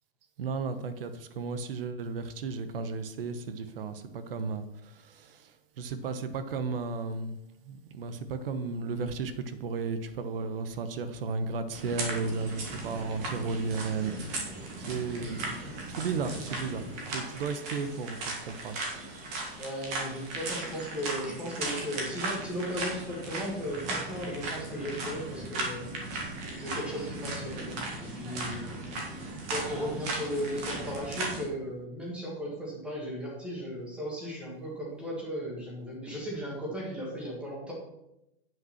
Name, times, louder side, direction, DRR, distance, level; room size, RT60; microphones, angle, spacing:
voice 1, 0.4-7.4 7.7-15.5 15.9-18.8 29.4-29.5, right 4 dB, 70° right, 11 dB, 1.0 m, -34 dB
sound 1, 11.7-31.4, right 2 dB, 25° right, 1.7 m, -37 dB
voice 2, 19.6-28.7 29.5-37.7, equal, 5° right, -3 dB, 1.8 m, -36 dB
9.2 x 5.4 x 5.8 m, 0.86 s
supercardioid pair, 180°, 30 cm